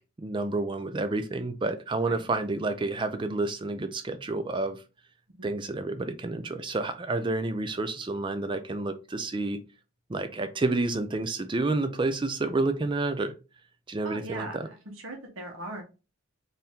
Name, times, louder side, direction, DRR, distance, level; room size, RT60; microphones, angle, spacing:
voice 1, 0.2-4.8 5.4-9.6 10.1-13.3 13.9-14.7, right 2 dB, 20° right, 9 dB, 0.4 m, -29 dB
voice 2, 14.0-14.8 15.0-15.8, right 2 dB, 70° right, 1 dB, 0.9 m, -39 dB
4.3 x 2.6 x 3.5 m, 0.31 s
head